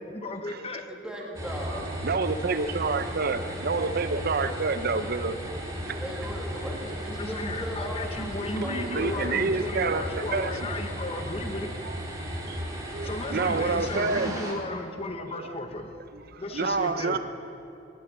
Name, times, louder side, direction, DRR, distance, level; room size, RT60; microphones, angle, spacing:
voice 1, 0.1-0.8 7.2-11.7 13.0-15.9 16.4-17.2, left 2 dB, 30° left, 6 dB, 0.9 m, -35 dB
voice 2, 0.9-1.9 5.8-9.3, equal, 5° right, -1 dB, 1.8 m, -38 dB
sound 1, 1.3-14.5, equal, 20° right, 1.9 m, -35 dB
voice 3, 1.7-5.4 6.7-6.8 8.6-10.7 11.8-12.6 12.9-14.3 15.3-15.5 16.1-17.2, right 4 dB, 55° right, 11 dB, 0.6 m, -29 dB
14.0 x 7.3 x 9.6 m, 2.7 s
head